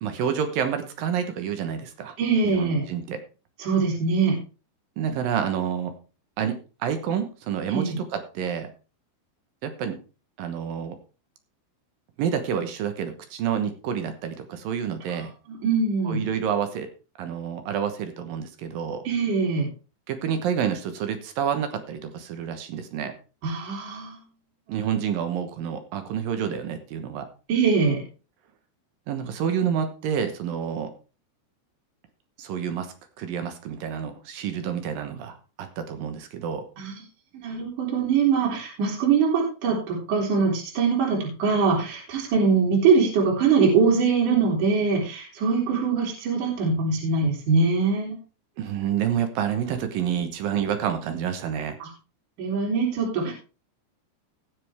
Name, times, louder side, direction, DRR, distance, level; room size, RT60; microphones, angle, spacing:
voice 1, 0.0-2.2 2.4-3.2 5.0-6.0 6.4-8.7 9.6-10.0 10.4-11.0 12.2-15.3 16.0-16.9 17.2-19.0 20.1-23.1 24.7-27.3 29.1-30.9 32.4-36.6 48.6-51.8, right 8 dB, 65° right, 8 dB, 2.5 m, -28 dB
voice 2, 2.2-2.9 3.6-4.4 7.7-8.0 15.5-16.2 19.0-19.7 23.4-24.2 27.5-28.0 36.8-36.9 37.3-48.2 51.8-51.9 52.4-53.3, right 5 dB, 50° right, -3 dB, 4.6 m, -23 dB
18.0 x 6.9 x 3.5 m, 0.33 s
omnidirectional pair, 5.0 m